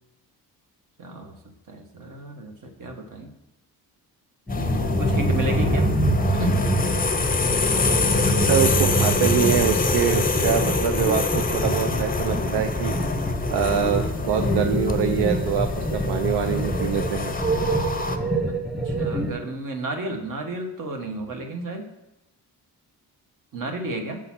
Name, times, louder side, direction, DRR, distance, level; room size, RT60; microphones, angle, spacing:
voice 1, 1.0-1.4 1.7-3.3 4.5-5.9 6.3-6.6 14.2-14.3 18.5-18.6 18.8-21.9 23.5-24.2, right 2 dB, 55° right, 4 dB, 1.3 m, -32 dB
sound 1, 4.5-18.2, left 4 dB, 20° left, 0.6 m, -26 dB
sound 2, 4.5-19.3, right 1 dB, ahead, 1.1 m, -26 dB
voice 2, 8.2-12.9 13.5-17.3, right 8 dB, 80° right, 7 dB, 0.5 m, -25 dB
6.2 x 3.9 x 5.9 m, 0.97 s
cardioid pair, 80°, 39 cm